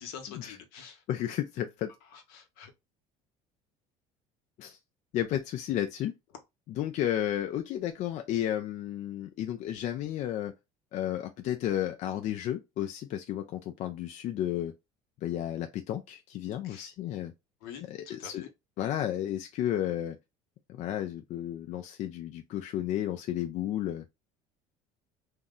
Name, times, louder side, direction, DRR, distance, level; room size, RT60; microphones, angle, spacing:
voice 1, 0.0-1.0 2.1-2.7 16.6-16.9 17.6-18.5, left 7 dB, 80° left, 0.9 m, -46 dB
voice 2, 1.1-1.9 4.6-4.8 5.1-6.1 6.7-10.5 10.9-14.7 15.2-17.3 17.9-18.4 18.8-20.2 20.7-24.0, left 11 dB, 50° left, 0.4 m, -32 dB
2.7 x 2.0 x 3.6 m
supercardioid pair, 110°, 15 cm